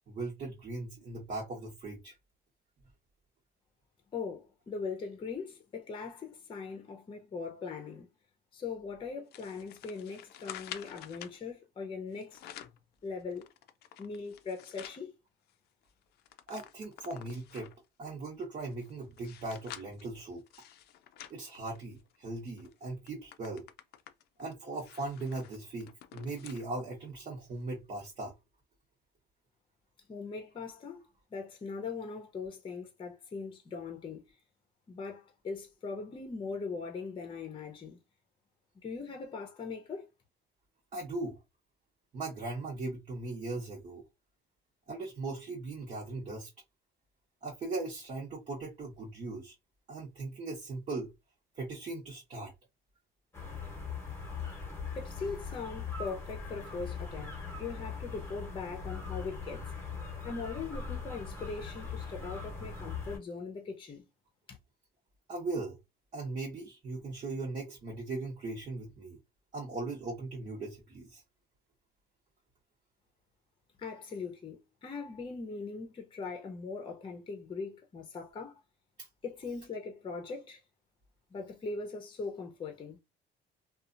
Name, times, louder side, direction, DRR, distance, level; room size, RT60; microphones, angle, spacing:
voice 1, 0.1-2.1 16.5-17.7 18.0-20.4 21.3-23.7 24.4-28.3 40.9-41.4 42.1-44.0 44.9-46.5 47.4-49.5 49.9-51.1 51.5-52.5 65.3-65.8 66.1-69.2 69.5-71.2 79.0-79.1, right 2 dB, 45° right, 1.1 m, -39 dB
voice 2, 4.1-8.1 8.5-12.4 13.0-13.5 14.0-15.1 30.1-34.3 34.9-38.0 38.8-40.1 55.0-59.6 60.2-64.0 64.5-64.6 73.8-78.6 79.2-80.6 81.3-83.0, left 4 dB, 30° left, 0.7 m, -40 dB
sound 1, 9.3-11.4 12.1-12.8 13.3-15.0 15.5-15.6 15.8-17.8 18.4-22.2 22.6-22.7 23.1-26.7 27.1-27.2 28.0-28.1, left 11 dB, 70° left, 0.4 m, -49 dB
sound 2, 53.3-63.2, left 5 dB, 15° left, 1.1 m, -40 dB
2.8 x 2.4 x 2.5 m
cardioid pair, 110°, 17 cm